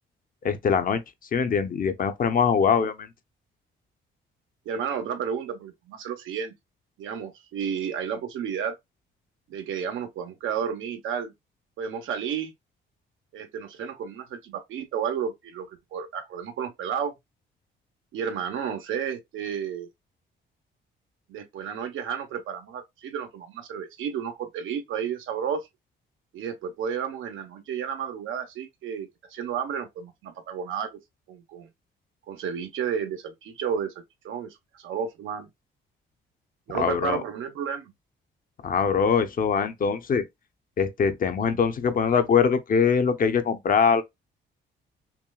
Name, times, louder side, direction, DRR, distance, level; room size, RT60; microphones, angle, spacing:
voice 1, 0.4-1.0 1.3-3.1 36.7-37.2 38.6-40.2 40.8-44.0, left 6 dB, 45° left, 0.7 m, -23 dB
voice 2, 4.6-6.5 7.0-8.7 9.5-11.3 11.8-12.5 13.3-17.1 18.1-19.9 21.3-25.6 26.3-31.0 31.3-31.7 32.3-33.9 34.2-35.5 36.7-37.9, right 7 dB, 80° right, 1.0 m, -32 dB
5.9 x 2.2 x 2.3 m
cardioid pair, 90°, 20 cm